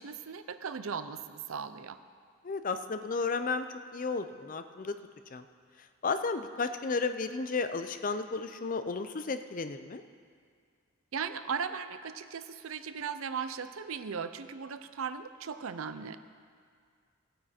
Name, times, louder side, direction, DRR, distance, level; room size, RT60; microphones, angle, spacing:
voice 1, 0.0-2.0 11.1-16.2, right 6 dB, 70° right, 11 dB, 0.5 m, -37 dB
voice 2, 2.4-3.7 3.9-5.0 5.3-5.4 6.0-10.0, left 4 dB, 40° left, 9 dB, 0.5 m, -33 dB
16.0 x 9.1 x 4.3 m, 2.1 s
head